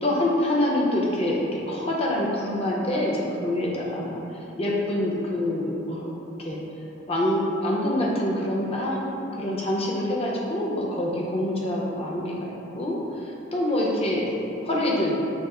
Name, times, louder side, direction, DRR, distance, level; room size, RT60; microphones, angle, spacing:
voice 1, 0.0-6.6 7.1-9.0 9.4-13.2 13.5-15.2, left 1 dB, 30° left, -3 dB, 0.7 m, -26 dB
5.8 x 2.0 x 4.2 m, 2.9 s
head